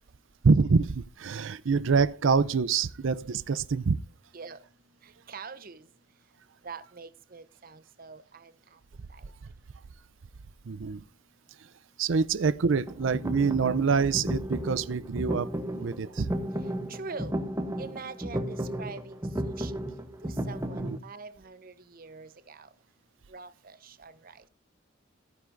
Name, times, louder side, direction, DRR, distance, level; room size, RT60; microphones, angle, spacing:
voice 1, 0.4-4.0 10.7-11.0 12.0-15.5 15.7-16.3 20.8-21.0, right 5 dB, 75° right, 0.5 m, -26 dB
voice 2, 5.0-5.9 6.6-8.8 9.1-9.3 16.9-17.3 17.8-19.7 20.2-22.7 23.3-24.4, right 4 dB, 45° right, 0.9 m, -44 dB
sound 1, 12.9-21.0, right 1 dB, 15° right, 0.9 m, -33 dB
15.5 x 9.5 x 2.6 m
head